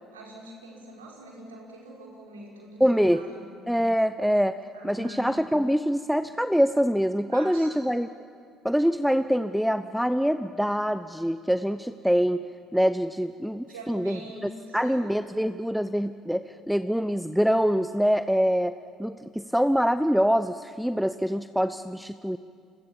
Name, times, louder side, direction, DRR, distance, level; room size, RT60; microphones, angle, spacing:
voice 1, 0.0-3.5 4.7-5.3 7.3-7.8 13.7-15.2, right 1 dB, 90° right, -2 dB, 5.1 m, -44 dB
voice 2, 2.8-3.2 3.7-4.6 4.8-8.1 8.6-12.4 12.7-22.4, equal, ahead, 11 dB, 0.8 m, -25 dB
28.5 x 22.5 x 7.3 m, 2.2 s
hypercardioid pair, 55°, 0 cm